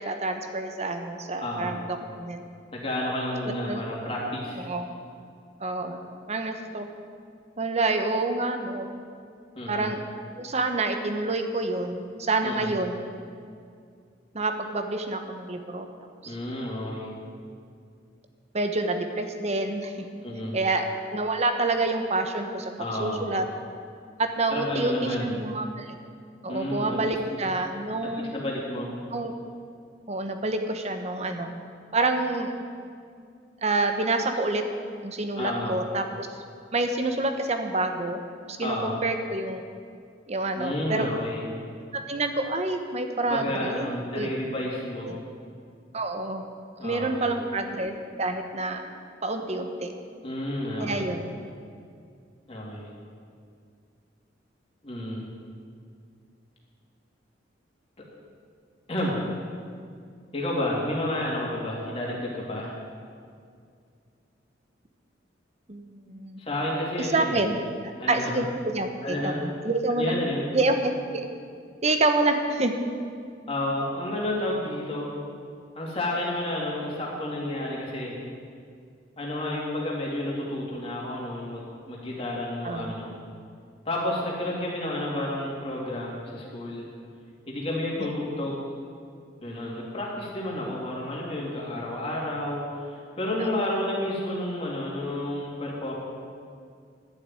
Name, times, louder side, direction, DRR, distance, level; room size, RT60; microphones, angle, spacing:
voice 1, 0.0-2.4 3.7-3.8 4.6-4.9 5.6-6.0 6.3-6.9 7.6-8.9 9.7-10.0 10.4-13.0 14.3-15.9 16.2-16.3 18.5-20.1 20.5-22.7 23.0-23.4 24.2-25.9 26.4-28.3 29.1-29.3 30.1-31.5 31.9-32.5 33.6-34.6 35.0-36.3 36.7-38.2 38.5-39.6 40.3-41.1 41.9-44.3 45.0-45.2 45.9-46.5 46.8-48.8 49.2-49.9 50.8-51.3 65.7-66.4 67.0-67.6 67.8-70.1 70.5-71.3 71.8-72.8 82.6-82.9 88.0-88.1 93.4-93.5, right 2 dB, 35° right, 6 dB, 1.0 m, -28 dB
voice 2, 1.4-1.8 2.7-4.7 9.5-9.9 12.4-12.7 16.2-17.1 20.2-20.6 22.8-23.3 24.5-25.3 26.5-27.0 27.3-27.4 28.0-28.9 35.4-35.8 38.6-38.9 40.6-41.5 43.2-45.1 46.8-47.3 50.2-51.1 52.5-52.9 54.8-55.3 58.9-59.2 60.3-62.7 66.4-67.4 68.0-68.4 69.0-69.4 69.9-70.5 73.5-75.1 75.7-78.1 79.2-83.1 83.8-86.9 87.5-88.7 89.4-95.9, left 1 dB, 30° left, -4 dB, 2.9 m, -31 dB
12.0 x 6.8 x 9.0 m, 2.3 s
head